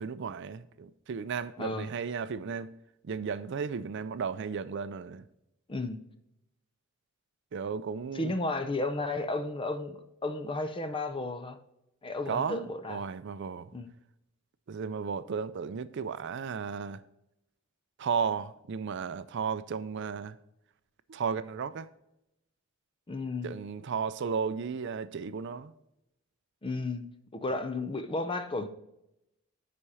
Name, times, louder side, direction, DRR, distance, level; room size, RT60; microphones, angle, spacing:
voice 1, 0.0-2.7 3.0-5.2 7.5-8.4 12.3-13.7 14.7-17.0 18.0-20.4 21.1-21.9 23.4-25.7, right 6 dB, 55° right, 0.4 m, -34 dB
voice 2, 1.6-1.9 5.7-6.0 8.1-11.6 12.0-13.1 13.7-13.9 23.1-23.6 26.6-28.7, left 2 dB, 25° left, 0.6 m, -33 dB
10.0 x 4.3 x 4.8 m
head